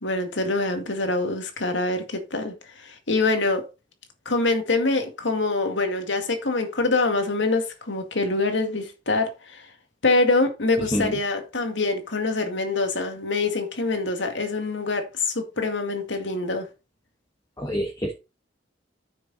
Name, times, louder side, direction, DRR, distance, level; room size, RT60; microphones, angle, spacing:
voice 1, 0.0-3.7 4.3-9.7 10.0-16.7, left 3 dB, 85° left, 2.1 m, -25 dB
voice 2, 17.6-18.1, equal, 20° left, 1.4 m, -26 dB
9.4 x 6.8 x 4.2 m
head